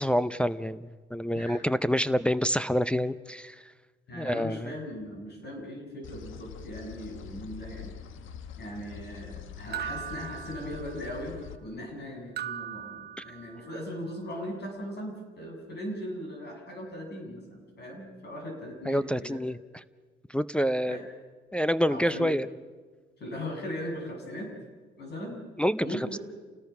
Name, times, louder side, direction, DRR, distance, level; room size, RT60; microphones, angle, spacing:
voice 1, 0.0-3.6 4.1-4.7 18.9-19.6 20.3-21.0 21.5-22.5 25.6-25.9, equal, 5° left, 11 dB, 0.6 m, -27 dB
voice 2, 1.3-1.6 4.1-7.9 8.6-19.4 20.9-21.0 21.9-22.3 23.2-24.5 25.0-25.4 25.8-26.2, equal, 55° left, 1 dB, 7.3 m, -39 dB
sound 1, 6.0-11.6, left 8 dB, 80° left, 1.2 m, -44 dB
sound 2, 9.7-11.2 12.4-13.8, right 10 dB, 55° right, 0.8 m, -39 dB
28.5 x 19.0 x 5.9 m, 1.4 s
cardioid pair, 90°, 20 cm